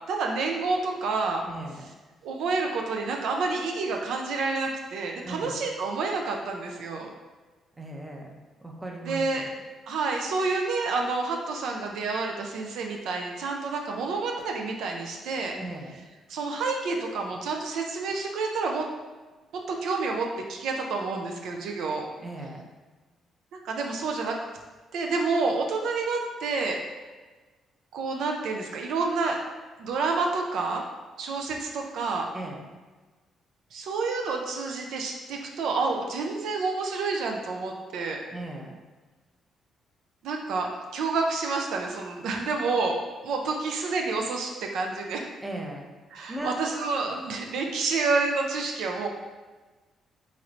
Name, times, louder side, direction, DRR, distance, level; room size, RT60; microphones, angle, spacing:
voice 1, 0.1-1.4 2.2-7.1 9.1-9.5 9.9-15.6 16.3-18.9 19.7-22.1 23.5-24.4 24.9-26.8 27.9-29.4 29.8-30.8 31.2-32.3 33.7-38.2 40.2-45.3 46.1-49.1, right 3 dB, 80° right, 2 dB, 0.4 m, -29 dB
voice 2, 1.5-1.8 5.2-5.6 7.8-8.3 8.6-9.5 15.6-15.9 22.2-22.6 32.3-32.6 38.3-38.7 45.4-45.8 46.3-46.5, right 1 dB, 15° right, 0 dB, 0.5 m, -37 dB
3.1 x 2.9 x 2.5 m, 1.3 s
cardioid pair, 90°, 0 cm